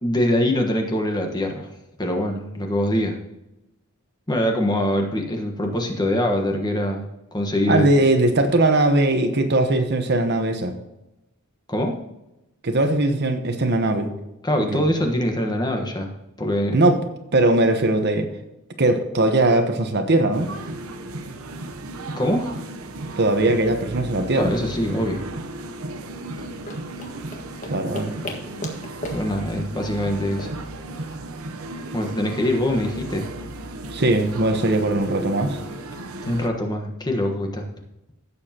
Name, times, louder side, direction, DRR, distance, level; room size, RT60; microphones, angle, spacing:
voice 1, 0.0-1.7 2.0-3.2 4.3-7.1 7.3-7.9 11.7-12.0 14.4-16.1 16.4-16.8 22.2-22.6 24.3-25.2 29.1-30.5 31.9-33.3 36.2-37.6, left 1 dB, 20° left, 3 dB, 1.3 m, -23 dB
voice 2, 7.7-10.7 12.6-14.1 14.6-14.8 16.7-17.0 17.3-18.3 18.8-20.5 23.2-24.5 27.7-28.1 33.9-35.6, right 2 dB, 50° right, 7 dB, 1.1 m, -20 dB
sound 1, 20.3-36.5, right 2 dB, 70° right, 0.9 m, -35 dB
sound 2, 26.3-31.5, left 1 dB, 35° left, 1.7 m, -38 dB
16.0 x 7.2 x 2.9 m, 0.93 s
head